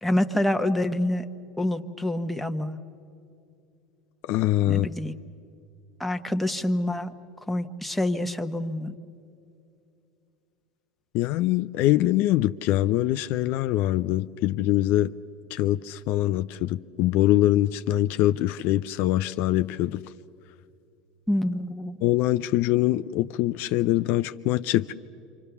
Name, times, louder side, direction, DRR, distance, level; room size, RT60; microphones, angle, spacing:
voice 1, 0.0-1.2 1.6-2.8 4.7-5.1 6.0-7.1 7.5-8.9 21.3-22.0, left 1 dB, ahead, 5 dB, 1.2 m, -26 dB
voice 2, 4.3-4.9 11.1-15.1 15.5-20.0 22.0-24.9, left 14 dB, 60° left, 12 dB, 0.5 m, -23 dB
27.5 x 25.5 x 7.0 m, 2.6 s
hypercardioid pair, 90°, 4 cm